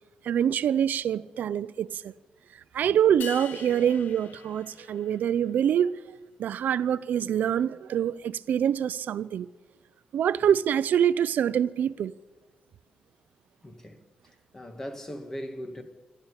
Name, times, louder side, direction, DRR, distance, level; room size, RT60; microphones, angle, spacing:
voice 1, 0.2-2.1 2.7-6.0 6.4-9.5 10.1-12.1, right 9 dB, 75° right, 0.7 m, -25 dB
sound 1, 3.2-5.5, left 7 dB, 80° left, 1.4 m, -43 dB
voice 2, 13.6-14.0 14.5-15.8, equal, 15° left, 2.0 m, -39 dB
26.5 x 12.0 x 9.9 m
wide cardioid pair, 160°, 3 cm